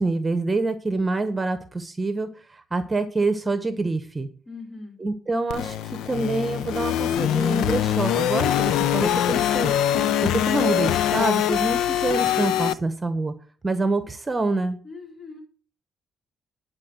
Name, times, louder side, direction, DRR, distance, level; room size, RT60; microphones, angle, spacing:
voice 1, 0.0-4.3 5.0-5.8 6.0-9.7 10.2-13.3 13.6-14.8, right 3 dB, 25° right, 10 dB, 1.1 m, -26 dB
voice 2, 4.4-5.0 14.8-15.4, left 3 dB, 40° left, 2 dB, 4.9 m, -40 dB
sound 1, 5.5-12.7, left 10 dB, 85° left, 0.5 m, -23 dB
10.5 x 4.5 x 7.8 m, 0.43 s
cardioid pair, 90°, 0 cm